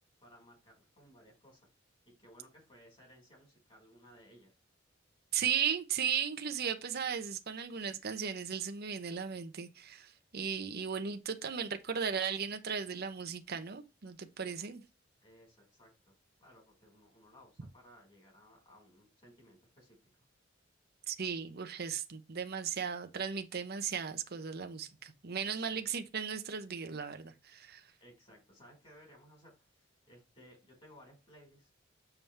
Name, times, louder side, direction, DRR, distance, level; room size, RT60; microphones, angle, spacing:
voice 1, 0.2-1.7 2.0-4.5 14.5-14.8 15.2-20.0 25.5-25.9 28.0-31.7, equal, 30° left, 4.8 m, -60 dB
voice 2, 5.3-14.8 21.1-27.8, right 7 dB, 55° right, 0.8 m, -36 dB
7.1 x 6.9 x 3.4 m
head